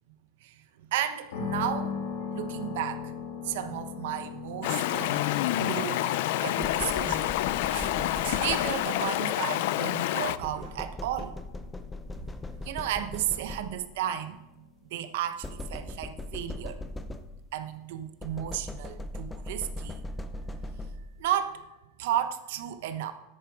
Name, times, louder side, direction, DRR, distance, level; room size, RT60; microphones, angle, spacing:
voice 1, 0.4-1.9 2.3-3.1 3.4-5.2 5.6-6.0 6.4-7.4 7.7-11.4 12.6-14.4 14.9-16.8 17.5-20.0 21.2-21.6 22.0-23.1, right 11 dB, 60° right, 9 dB, 1.1 m, -33 dB
sound 1, 1.3-17.2, left 6 dB, 75° left, 2.9 m, -42 dB
Stream, 4.6-10.4, left 14 dB, 55° left, 0.5 m, -28 dB
sound 2, 6.6-9.1 10.4-14.0 15.4-17.6 18.2-21.3, left 1 dB, 10° left, 0.6 m, -39 dB
13.5 x 10.0 x 5.0 m, 0.99 s
supercardioid pair, 170°, 0 cm